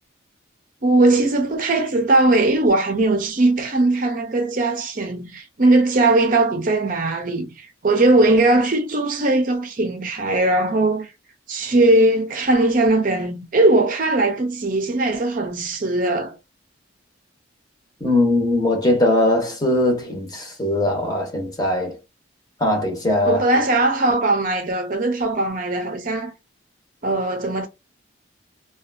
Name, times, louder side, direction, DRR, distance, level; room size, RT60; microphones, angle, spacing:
voice 1, 0.8-11.1 11.5-16.4 23.2-26.3 27.0-27.7, right 2 dB, 45° right, 0.5 m, -19 dB
voice 2, 18.0-21.9 22.6-23.4, left 1 dB, 20° left, 0.8 m, -20 dB
2.6 x 2.3 x 2.5 m
head